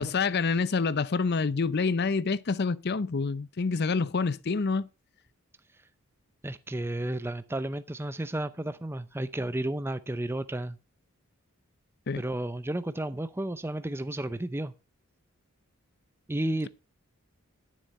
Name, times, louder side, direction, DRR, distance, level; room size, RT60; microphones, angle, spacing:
voice 1, 0.0-4.9 12.1-12.2, left 4 dB, 50° left, 0.6 m, -27 dB
voice 2, 6.4-10.8 12.2-14.7 16.3-16.7, right 1 dB, 10° right, 0.5 m, -32 dB
12.5 x 7.4 x 5.4 m
head